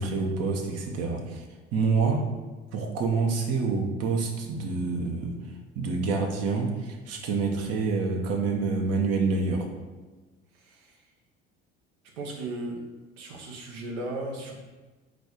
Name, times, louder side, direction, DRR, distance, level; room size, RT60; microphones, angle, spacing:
voice 1, 0.0-1.4 1.7-2.3 2.7-5.4 5.8-9.7, right 4 dB, 50° right, 3 dB, 0.8 m, -27 dB
voice 2, 10.5-11.1 12.2-12.8 13.2-14.6, right 2 dB, 75° right, 0 dB, 0.9 m, -36 dB
4.2 x 2.3 x 4.4 m, 1.2 s
hypercardioid pair, 65°, 31 cm